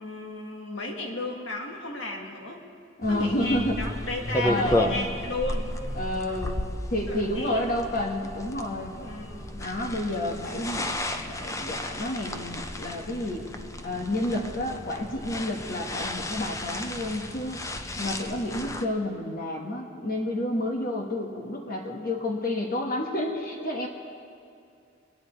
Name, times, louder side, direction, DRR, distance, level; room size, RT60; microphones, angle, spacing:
voice 1, 0.0-2.6 3.1-5.7 7.1-7.7 8.9-9.6, left 2 dB, 75° left, 1 dB, 1.9 m, -34 dB
voice 2, 3.0-3.7 4.4-5.1 6.0-6.6 6.9-8.9 9.6-10.9 11.3-13.4 13.8-17.7 18.0-23.9, left 1 dB, 50° left, 1 dB, 1.3 m, -30 dB
sound 1, 3.0-18.8, left 1 dB, 15° left, 0.6 m, -33 dB
23.0 x 9.5 x 4.5 m, 2.5 s
head